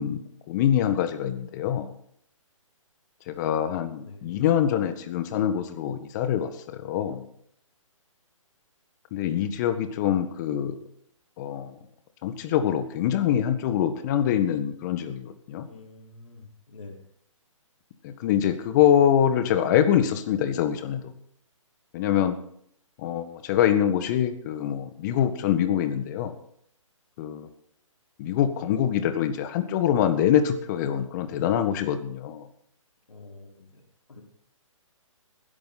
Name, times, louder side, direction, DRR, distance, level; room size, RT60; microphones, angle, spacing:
voice 1, 0.0-1.9 3.3-7.2 9.1-10.7 11.4-11.7 12.2-15.7 18.0-21.0 21.9-22.3 23.0-26.3 27.2-27.5 28.2-32.4, left 10 dB, 35° left, 9 dB, 1.6 m, -24 dB
voice 2, 4.0-4.4 15.6-17.0 33.1-33.8 34.1-34.2, left 3 dB, 75° left, 1 dB, 4.8 m, -46 dB
20.0 x 11.0 x 4.2 m, 0.66 s
figure-of-eight pair, 140°, 17 cm